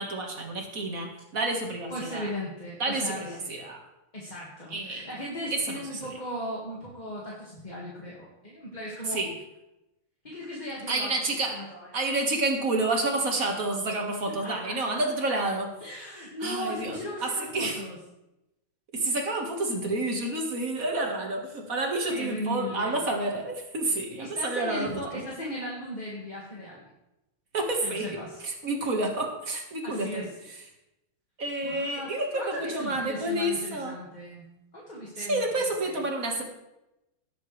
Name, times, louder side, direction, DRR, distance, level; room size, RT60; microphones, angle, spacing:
voice 1, 0.0-2.3 2.8-3.8 4.7-5.1 5.5-5.8 9.1-9.3 10.9-11.6 11.9-15.7 16.4-17.8 18.9-25.2 27.5-28.2 28.4-30.3 31.4-34.0 35.2-36.4, right 2 dB, 40° right, 1 dB, 1.9 m, -29 dB
voice 2, 1.9-3.5 4.1-9.2 10.2-11.1 11.5-11.9 14.3-15.0 15.8-18.0 22.1-23.0 24.2-26.9 27.8-28.4 29.8-30.3 31.6-34.5 34.7-36.0, equal, 20° left, -4 dB, 1.8 m, -37 dB
17.5 x 8.1 x 3.3 m, 0.91 s
omnidirectional pair, 2.3 m